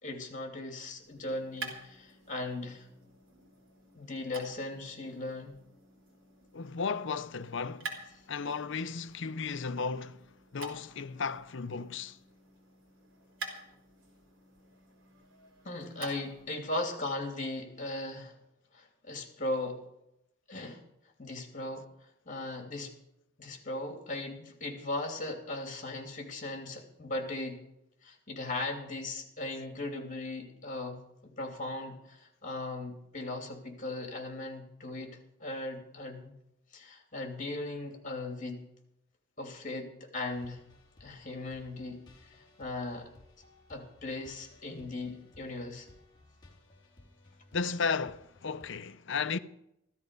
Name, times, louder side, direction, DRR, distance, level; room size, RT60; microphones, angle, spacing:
voice 1, 0.0-2.9 3.9-5.6 15.6-18.3 18.7-19.8 20.5-20.8 21.2-21.9 22.2-22.9 23.4-27.6 28.0-36.4 36.7-38.6 39.4-40.6 41.0-42.0 42.3-43.1 43.7-45.9, left 2 dB, 40° left, 2.9 m, -38 dB
sound 1, 0.9-16.5, right 3 dB, 75° right, 3.5 m, -48 dB
voice 2, 6.5-7.9 8.3-10.3 10.5-12.2 47.5-49.4, left 5 dB, 65° left, 0.7 m, -34 dB
sound 2, 40.3-48.7, left 2 dB, 20° left, 3.0 m, -59 dB
15.0 x 13.5 x 5.3 m
head